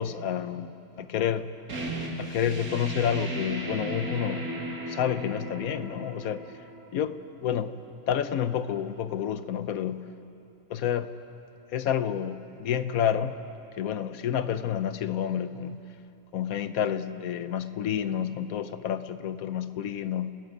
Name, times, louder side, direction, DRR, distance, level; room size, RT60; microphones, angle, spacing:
voice 1, 0.0-1.5 2.2-4.4 4.9-6.6 6.9-7.7 8.1-10.0 10.7-11.1 11.7-13.3 13.8-15.8 16.3-20.3, left 9 dB, 75° left, 12 dB, 1.2 m, -29 dB
sound 1, 1.7-7.1, right 1 dB, 85° right, 2.8 m, -36 dB
29.5 x 18.0 x 5.4 m, 2.8 s
omnidirectional pair, 1.5 m